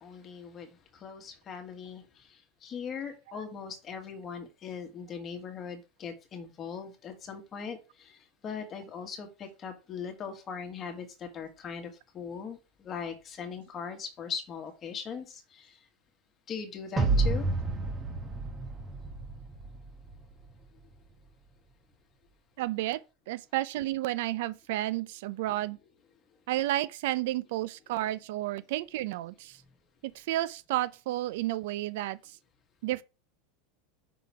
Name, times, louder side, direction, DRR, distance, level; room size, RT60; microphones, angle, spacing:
voice 1, 0.0-15.9 16.5-17.5 29.6-29.7, left 6 dB, 30° left, 1.6 m, -40 dB
sound 1, 17.0-20.3, right 3 dB, 20° right, 1.0 m, -30 dB
voice 2, 22.6-23.0 23.3-25.8 26.5-29.6 30.0-32.2 32.8-33.0, right 15 dB, 70° right, 0.4 m, -31 dB
5.8 x 3.7 x 4.7 m
supercardioid pair, 130°, 0 cm